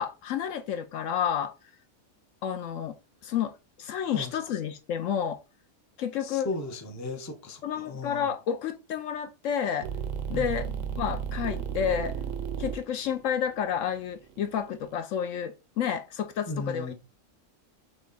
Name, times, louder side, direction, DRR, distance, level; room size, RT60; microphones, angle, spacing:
voice 1, 0.0-1.5 2.4-3.0 3.2-3.5 3.8-5.4 6.0-6.5 7.6-9.9 10.3-10.7 11.0-12.1 12.6-16.9, left 8 dB, 70° left, 0.8 m, -30 dB
voice 2, 6.2-8.3 10.3-10.7 16.5-16.9, left 3 dB, 20° left, 0.4 m, -36 dB
sound 1, 9.8-15.0, right 7 dB, 70° right, 0.9 m, -34 dB
6.2 x 2.2 x 3.8 m
omnidirectional pair, 1.5 m